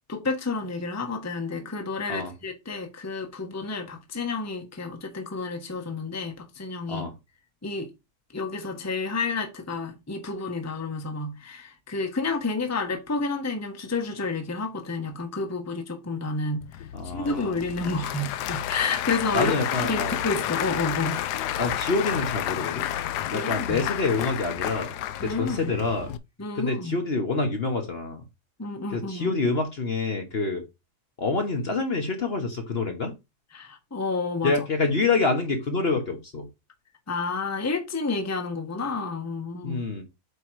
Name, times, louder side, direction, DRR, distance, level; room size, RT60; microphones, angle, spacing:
voice 1, 0.1-7.1 7.6-7.9 8.3-16.7 17.1-19.5 19.9-21.2 23.3-23.8 25.2-25.7 26.4-27.0 28.6-29.3 33.5-34.5 37.1-39.8, left 3 dB, 10° left, 0.9 m, -30 dB
Applause / Crowd, 16.6-26.2, left 11 dB, 85° left, 1.2 m, -31 dB
voice 2, 16.9-17.5 19.3-20.2 21.6-22.9 23.3-24.9 25.2-26.1 26.5-28.2 28.9-30.6 31.2-33.1 34.4-36.5 39.6-40.0, left 3 dB, 45° left, 1.1 m, -27 dB
8.0 x 3.0 x 4.6 m
omnidirectional pair, 1.7 m